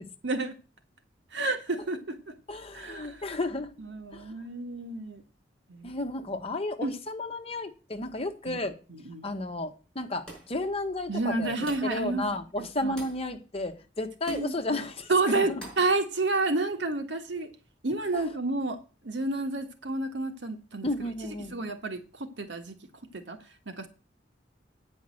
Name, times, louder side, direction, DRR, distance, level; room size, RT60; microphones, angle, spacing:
voice 1, 0.2-0.5 1.3-2.2 2.7-3.2 3.8-5.2 5.7-5.9 6.8-6.9 8.5-8.6 8.9-9.3 11.1-12.2 12.6-12.9 14.3-14.5 15.1-17.5 17.8-18.8 19.0-20.9 21.5-22.8 23.1-23.4 23.7-23.9, right 2 dB, 80° right, 1.5 m, -30 dB
voice 2, 2.5-3.7 4.1-4.2 5.8-8.8 9.2-11.5 11.8-15.6 18.1-18.2 20.8-21.5, left 2 dB, 35° left, 1.2 m, -33 dB
sound 1, 10.3-10.6 11.7-12.0 13.0-13.3 14.3-14.5 15.6-15.9, right 1 dB, 5° left, 5.4 m, -45 dB
9.2 x 5.3 x 7.7 m
head